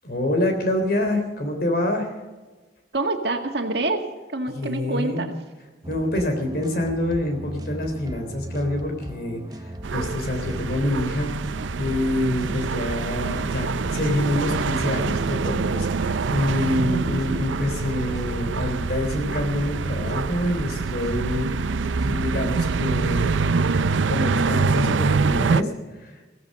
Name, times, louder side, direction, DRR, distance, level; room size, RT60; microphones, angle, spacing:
voice 1, 0.0-2.1 4.5-5.3 5.9-11.3 11.8-21.8 22.0-23.6 24.1-26.2, left 1 dB, 55° left, 4 dB, 3.6 m, -26 dB
voice 2, 2.9-4.0 4.3-5.3, right 2 dB, 65° right, 4 dB, 1.9 m, -26 dB
sound 1, 5.8-24.7, right 1 dB, 20° right, 0.9 m, -38 dB
sound 2, 9.8-25.6, right 4 dB, 90° right, 0.5 m, -25 dB
17.0 x 15.0 x 5.4 m, 1.2 s
head